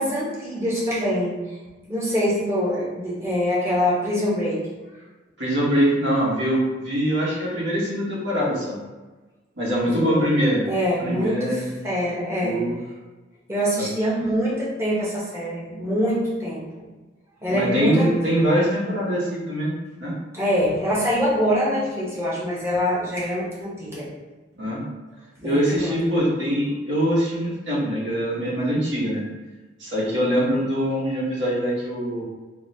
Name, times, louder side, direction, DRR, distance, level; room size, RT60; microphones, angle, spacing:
voice 1, 0.0-1.6 1.9-4.7 9.9-10.3 10.7-12.6 13.5-16.9 17.4-18.1 20.3-24.1 25.4-26.2, equal, 15° right, -7 dB, 0.8 m, -24 dB
voice 2, 5.4-6.6 6.8-8.8 9.6-10.7 11.0-11.7 12.4-12.8 13.8-13.9 17.5-20.1 24.6-24.8 25.4-29.2 29.8-32.2, equal, 75° right, -6 dB, 1.1 m, -23 dB
3.6 x 2.2 x 2.6 m, 1.2 s
head